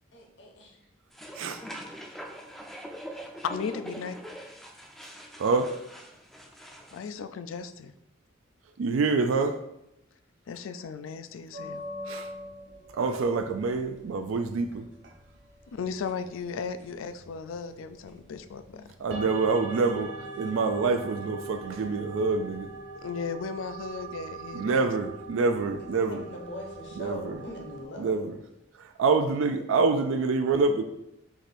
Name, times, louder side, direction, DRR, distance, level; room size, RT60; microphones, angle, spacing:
voice 1, 0.1-0.8 5.2-5.3 19.3-20.2 20.5-20.7 25.6-28.3, left 1 dB, 60° left, 1 dB, 0.9 m, -43 dB
sound 1, 1.1-7.0, equal, ahead, 0.4 m, -43 dB
voice 2, 3.4-4.2 6.9-7.9 10.5-11.8 15.7-18.9 23.0-24.9, left 5 dB, 85° left, 11 dB, 0.3 m, -36 dB
voice 3, 5.4-5.7 8.8-9.6 12.1-12.3 12.9-14.9 19.0-20.1 20.3-22.7 24.5-26.2 27.0-27.2 28.0-28.3 29.0-30.8, right 4 dB, 90° right, 7 dB, 0.4 m, -26 dB
sound 2, 11.5-27.8, right 2 dB, 60° right, 1.1 m, -43 dB
4.8 x 2.6 x 4.1 m, 0.83 s
head